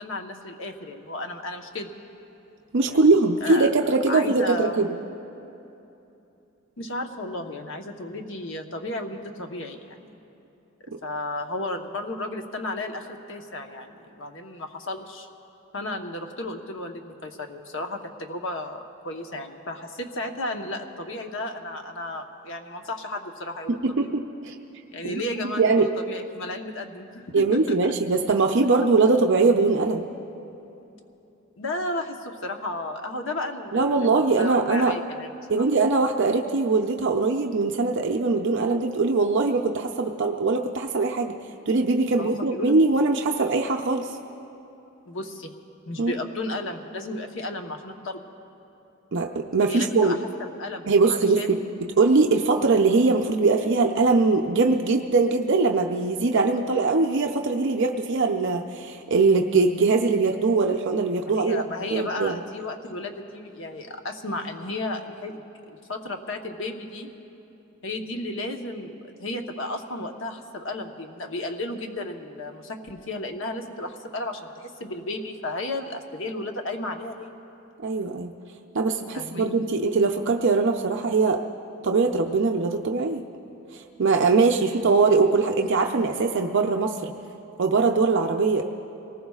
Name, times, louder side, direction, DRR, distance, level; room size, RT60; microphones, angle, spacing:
voice 1, 0.0-1.9 2.8-3.1 3.4-3.7 4.1-4.9 6.8-10.2 11.0-15.3 15.7-24.1 24.9-27.9 28.6-28.7 31.6-35.6 42.1-42.8 45.1-45.5 45.9-48.2 49.7-50.2 50.6-51.6 61.2-67.1 67.8-77.3 79.1-79.6, left 2 dB, 65° left, 4 dB, 1.1 m, -33 dB
voice 2, 2.7-4.9 23.8-24.6 25.0-25.2 25.6-25.9 27.3-30.0 33.7-34.9 35.5-41.4 41.7-44.1 46.0-46.1 49.1-50.2 50.8-51.6 52.0-61.6 61.9-62.4 77.8-78.3 78.7-81.4 81.8-83.2 83.7-87.1 87.6-88.6, right 3 dB, 60° right, 3 dB, 0.6 m, -21 dB
26.0 x 19.0 x 2.4 m, 2.9 s
head